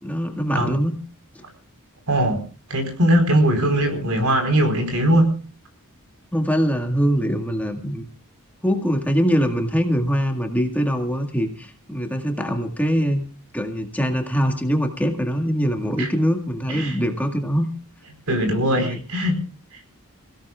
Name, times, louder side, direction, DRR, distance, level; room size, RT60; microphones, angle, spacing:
voice 1, 0.0-0.9 6.3-8.1 8.6-13.3 13.5-17.7 18.8-19.0, equal, 5° left, 4 dB, 1.8 m, -23 dB
voice 2, 2.1-2.4 2.7-5.4 16.0-16.1 16.7-16.9 18.3-19.4, right 1 dB, 75° right, 6 dB, 4.6 m, -20 dB
28.5 x 16.5 x 2.4 m, 0.37 s
head